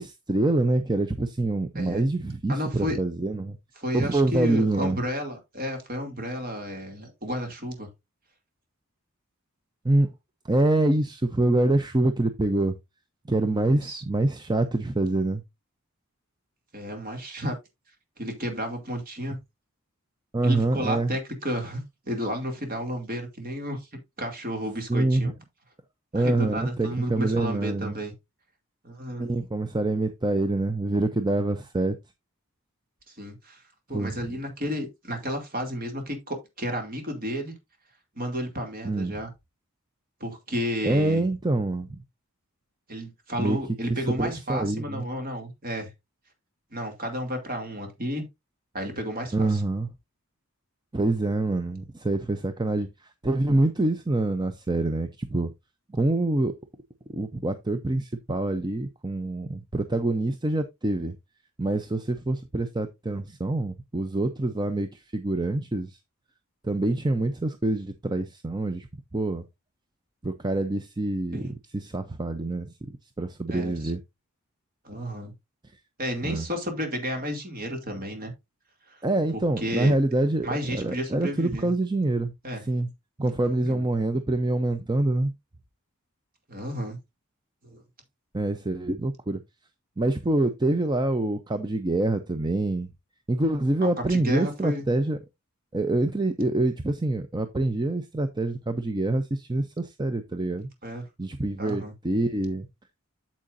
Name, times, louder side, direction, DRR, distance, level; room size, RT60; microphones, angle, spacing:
voice 1, 0.0-3.6 3.9-5.0 9.8-10.1 10.5-12.8 13.3-15.4 20.3-21.2 24.9-25.3 26.1-28.0 29.2-32.0 33.9-34.2 38.8-39.1 40.8-42.0 43.4-43.6 44.1-45.1 49.3-49.9 50.9-52.9 53.2-55.5 55.9-56.5 57.1-61.1 61.6-66.0 66.6-68.9 69.1-69.4 70.2-72.7 73.2-74.0 76.2-76.5 79.0-82.3 82.7-82.9 83.2-85.3 88.3-89.4 90.0-92.9 93.3-95.2 95.7-100.7 101.2-102.7, right 2 dB, 20° right, 0.5 m, -26 dB
voice 2, 2.5-3.0 3.8-7.9 13.7-14.0 16.7-17.6 18.2-19.4 20.4-23.9 24.2-25.3 26.1-28.1 28.8-29.3 33.2-33.6 33.9-37.5 38.2-39.3 40.2-41.2 42.9-45.9 46.7-48.3 48.7-49.6 71.3-71.5 73.5-73.8 74.8-75.3 76.0-78.3 78.9-79.0 79.3-79.9 80.4-81.7 82.4-82.6 83.5-83.8 86.5-87.0 87.6-87.8 94.1-94.8 100.8-101.0 101.6-101.9, equal, 40° right, 2.6 m, -32 dB
8.6 x 7.4 x 2.6 m
head